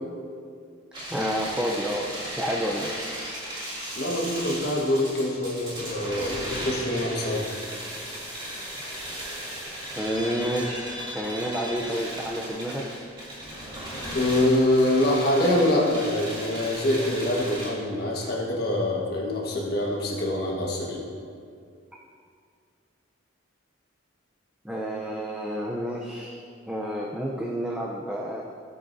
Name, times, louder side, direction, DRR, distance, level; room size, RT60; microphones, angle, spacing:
sound 1, 0.9-17.7, equal, 25° right, 2.7 m, -36 dB
voice 1, 1.1-2.9 10.0-12.8 24.6-26.4 26.7-28.4, equal, 5° right, -3 dB, 0.6 m, -30 dB
voice 2, 4.0-7.5 14.1-21.0, left 1 dB, 50° left, -3 dB, 1.5 m, -25 dB
16.5 x 8.1 x 2.7 m, 2.2 s
head